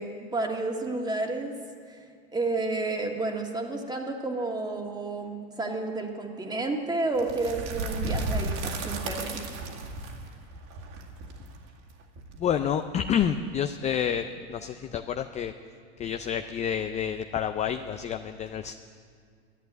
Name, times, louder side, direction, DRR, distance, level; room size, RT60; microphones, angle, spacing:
voice 1, 0.0-1.6 1.9-2.0 2.3-9.4, right 2 dB, 10° right, 3 dB, 1.7 m, -31 dB
sound 1, 7.2-13.0, right 2 dB, 55° right, 2.1 m, -34 dB
voice 2, 12.4-14.2 14.5-15.5 16.0-18.7, left 8 dB, 20° left, 8 dB, 0.4 m, -29 dB
11.5 x 11.0 x 9.3 m, 2.2 s
hypercardioid pair, 110°, 34 cm